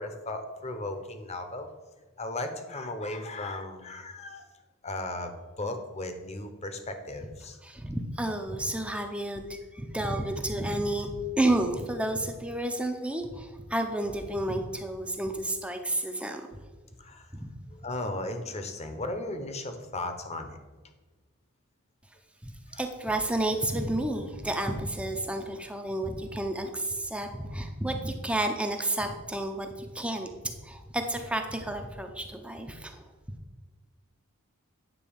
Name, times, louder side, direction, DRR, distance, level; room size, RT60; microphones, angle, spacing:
voice 1, 0.0-1.7 2.2-4.5 4.8-5.3 5.6-7.6 17.0-17.3 17.7-20.6 22.7-22.8, left 2 dB, 30° left, 7 dB, 0.9 m, -36 dB
voice 2, 7.6-16.4 17.3-17.5 22.4-33.1, right 1 dB, 5° right, 5 dB, 0.7 m, -31 dB
9.3 x 4.1 x 7.1 m, 1.3 s
head